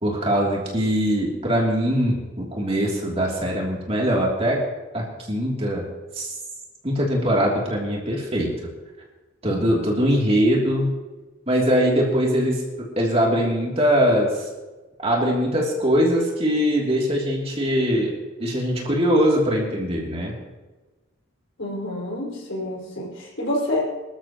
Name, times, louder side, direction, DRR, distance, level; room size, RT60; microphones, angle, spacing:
voice 1, 0.0-4.6 4.9-5.9 6.1-6.3 6.8-8.5 9.4-10.9 11.5-12.6 13.0-14.5 15.0-20.3, equal, 30° right, -2 dB, 3.0 m, -22 dB
voice 2, 21.6-23.8, left 1 dB, 70° left, -3 dB, 5.5 m, -28 dB
24.0 x 13.0 x 3.0 m, 1.2 s
head